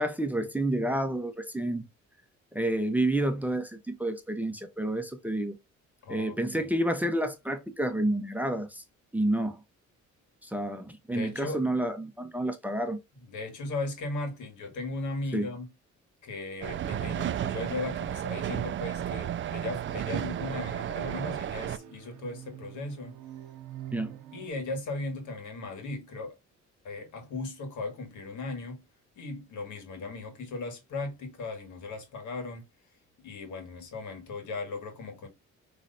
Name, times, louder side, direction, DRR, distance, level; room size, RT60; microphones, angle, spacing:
voice 1, 0.0-1.9 2.5-5.6 6.1-8.8 9.1-9.6 10.4-13.0 15.3-15.5 23.9-24.1, right 1 dB, 5° right, 0.8 m, -29 dB
voice 2, 6.0-6.7 11.1-11.7 13.3-15.7 16.2-23.2 24.3-26.3 26.8-28.8 29.2-32.6 33.2-35.3, left 3 dB, 75° left, 1.9 m, -37 dB
sound 1, 16.6-21.8, right 10 dB, 40° right, 0.4 m, -33 dB
sound 2, 18.9-24.5, right 11 dB, 90° right, 0.7 m, -46 dB
6.1 x 3.2 x 2.7 m
cardioid pair, 90°, 30 cm